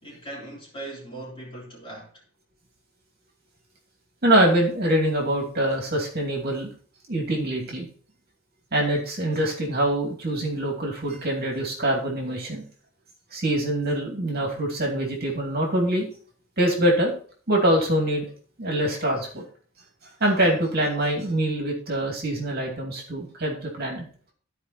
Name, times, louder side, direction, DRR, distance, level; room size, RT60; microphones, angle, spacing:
voice 1, 0.0-2.1, right 1 dB, 25° left, 3.8 m, -39 dB
voice 2, 4.2-6.7 7.1-7.9 8.7-12.6 13.3-16.1 16.6-17.1 17.5-18.2 18.6-19.4 20.2-24.1, right 1 dB, 45° right, 2.6 m, -24 dB
14.5 x 5.0 x 4.3 m
head